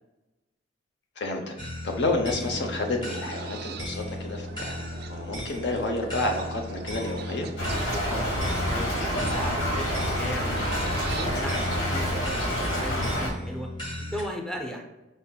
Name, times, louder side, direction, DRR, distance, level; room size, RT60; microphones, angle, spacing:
voice 1, 1.2-1.5 1.8-4.8 5.1-7.5, left 2 dB, 65° left, 3 dB, 0.7 m, -29 dB
sound 1, 1.6-14.3, left 1 dB, 25° left, 1.0 m, -37 dB
sound 2, 2.5-11.8, right 4 dB, 60° right, 0.4 m, -42 dB
Stream / Trickle dribble, 7.6-13.3, equal, 80° left, 1.4 m, -28 dB
voice 2, 7.9-8.4 8.7-13.7 14.0-14.8, equal, 5° left, 1 dB, 0.5 m, -37 dB
4.8 x 4.1 x 2.3 m, 1.0 s
head